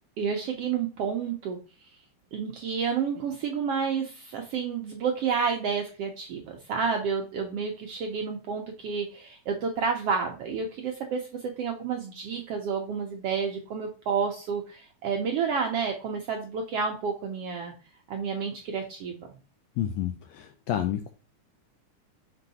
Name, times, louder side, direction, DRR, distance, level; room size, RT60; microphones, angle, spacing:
voice 1, 0.2-1.9 2.3-17.7 18.1-19.3, right 6 dB, 75° right, 3 dB, 1.4 m, -30 dB
voice 2, 19.8-21.1, left 10 dB, 80° left, 7 dB, 1.6 m, -30 dB
6.5 x 4.5 x 4.2 m, 0.35 s
omnidirectional pair, 3.6 m